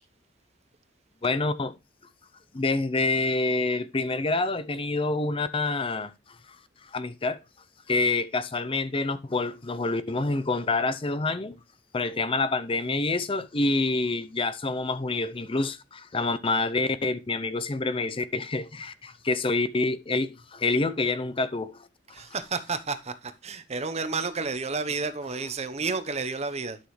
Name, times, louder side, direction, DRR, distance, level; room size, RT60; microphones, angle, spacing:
voice 1, 1.2-1.7 2.5-6.1 6.8-7.4 7.9-11.6 11.9-21.9, left 3 dB, 30° left, 0.6 m, -27 dB
voice 2, 22.1-26.8, right 4 dB, 35° right, 0.9 m, -31 dB
11.5 x 6.2 x 3.2 m
head